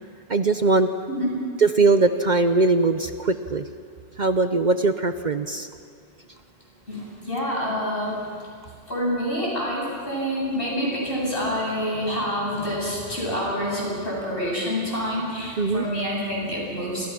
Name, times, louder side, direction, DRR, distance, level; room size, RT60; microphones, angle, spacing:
voice 1, 0.3-0.9 1.6-3.7 4.2-5.7 15.6-15.9, right 3 dB, 45° right, 9 dB, 0.9 m, -20 dB
voice 2, 1.1-1.4 6.9-8.2 8.9-17.1, equal, 55° left, -3 dB, 8.2 m, -27 dB
29.0 x 25.0 x 6.1 m, 2.3 s
omnidirectional pair, 1.2 m